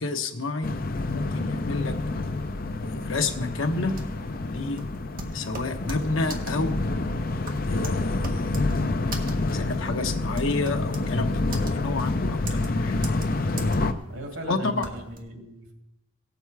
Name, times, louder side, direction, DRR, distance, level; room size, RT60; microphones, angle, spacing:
voice 1, 0.0-2.0 2.8-3.9 4.5-4.8 5.3-6.7 7.7-8.7 9.5-13.0 14.5-14.8, left 3 dB, 80° left, 6 dB, 1.0 m, -30 dB
sound 1, 0.6-13.9, left 2 dB, 45° left, 0.6 m, -28 dB
sound 2, 3.9-15.2, right 2 dB, 45° right, 1.4 m, -39 dB
voice 2, 14.1-15.7, right 1 dB, 85° right, 2 dB, 2.6 m, -38 dB
17.5 x 7.1 x 4.7 m, 0.90 s
head